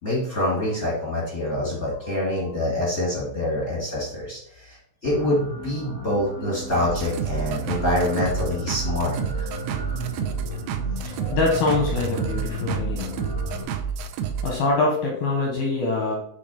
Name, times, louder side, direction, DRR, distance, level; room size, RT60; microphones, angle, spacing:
voice 1, 0.0-9.5, left 1 dB, 50° left, -6 dB, 0.8 m, -26 dB
sound 1, 5.0-13.6, left 1 dB, 35° right, 1.0 m, -36 dB
sound 2, 6.7-13.5, right 3 dB, 65° right, 2.5 m, -38 dB
sound 3, 6.9-14.6, right 7 dB, 85° right, 3.4 m, -29 dB
voice 2, 10.9-13.1 14.4-16.2, left 3 dB, 80° left, 0 dB, 2.1 m, -24 dB
10.0 x 3.5 x 4.3 m, 0.73 s
omnidirectional pair, 5.9 m